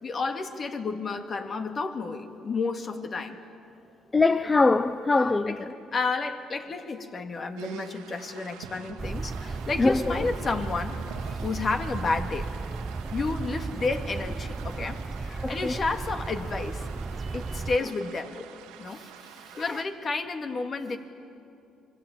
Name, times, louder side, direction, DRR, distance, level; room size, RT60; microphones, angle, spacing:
voice 1, 0.0-3.4 5.2-11.0 11.4-12.5 13.1-16.9 17.3-18.4 18.8-19.0 19.6-21.0, left 3 dB, 45° left, 2.3 m, -31 dB
voice 2, 4.1-5.7 9.8-10.2 14.8-14.9 15.3-15.7 19.6-19.7, left 3 dB, 25° left, 0.8 m, -23 dB
sound 1, 7.6-19.8, right 8 dB, 90° right, 1.8 m, -46 dB
sound 2, 9.0-17.8, right 4 dB, 30° right, 0.5 m, -34 dB
27.0 x 21.5 x 9.0 m
supercardioid pair, 70°, 0 cm